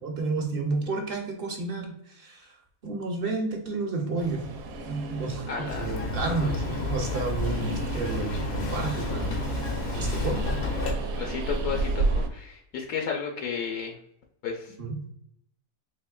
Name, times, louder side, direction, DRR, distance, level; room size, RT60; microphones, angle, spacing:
voice 1, 0.0-2.5 2.8-4.4 4.8-9.3 9.6-10.4 14.8-15.0, right 3 dB, 50° right, 2 dB, 0.8 m, -31 dB
Train, 4.2-12.3, right 2 dB, 75° right, 1.0 m, -32 dB
voice 2, 5.5-6.5 11.1-12.0 12.3-13.9 14.4-14.7, left 6 dB, 75° left, 2 dB, 1.0 m, -33 dB
Bird vocalization bird call bird song, 5.7-10.9, left 3 dB, 55° left, 0.6 m, -31 dB
4.2 x 3.1 x 2.2 m, 0.74 s
omnidirectional pair, 1.5 m